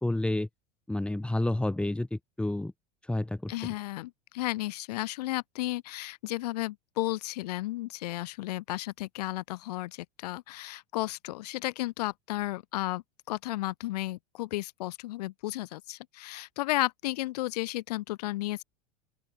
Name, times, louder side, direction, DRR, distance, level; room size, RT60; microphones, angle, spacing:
voice 1, 0.0-0.5 0.9-2.7 3.1-3.5, left 1 dB, 5° left, 1.6 m, -29 dB
voice 2, 3.5-18.6, left 17 dB, 75° left, 0.5 m, -33 dB
open air
hypercardioid pair, 105°, 21 cm